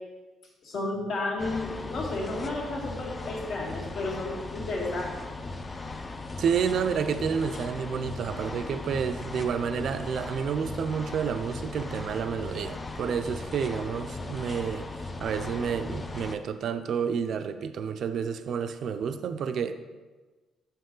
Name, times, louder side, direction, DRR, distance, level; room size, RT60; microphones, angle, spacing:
voice 1, 0.6-5.1, left 2 dB, 65° left, -3 dB, 1.9 m, -32 dB
sound 1, 1.4-16.4, left 3 dB, 20° left, 0.4 m, -38 dB
voice 2, 6.4-14.9 15.2-19.7, right 7 dB, 60° right, 9 dB, 0.4 m, -30 dB
7.1 x 5.5 x 3.8 m, 1.3 s
cardioid pair, 135°, 0 cm